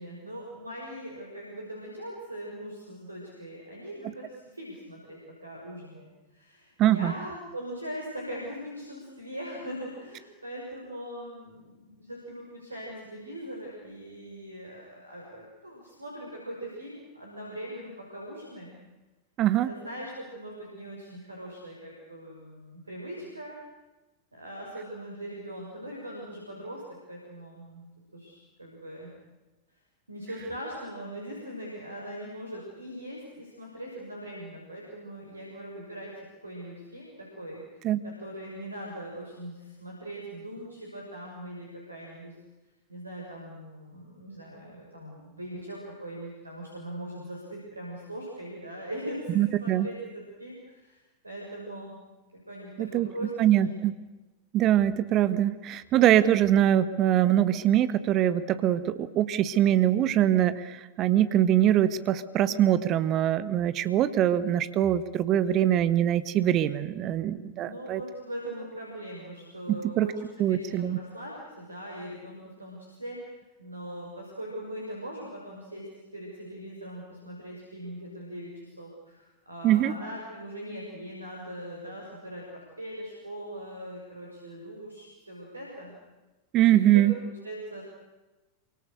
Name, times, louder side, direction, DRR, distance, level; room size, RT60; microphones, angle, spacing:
voice 1, 0.0-18.8 19.6-23.6 24.3-26.8 27.1-27.8 28.1-29.1 30.1-37.6 38.0-42.3 42.9-52.0 52.3-53.8 67.6-82.4 82.8-85.9 86.6-87.8, right 1 dB, 80° right, -2 dB, 6.5 m, -41 dB
voice 2, 6.8-7.1 19.4-19.7 37.8-38.0 49.3-49.9 52.8-53.1 53.4-53.9 54.5-68.0 69.7-70.1 70.4-71.0 79.6-79.9 86.5-87.1, right 12 dB, 35° right, 13 dB, 1.5 m, -23 dB
27.5 x 25.0 x 6.7 m, 1.1 s
figure-of-eight pair, 90°, 0 cm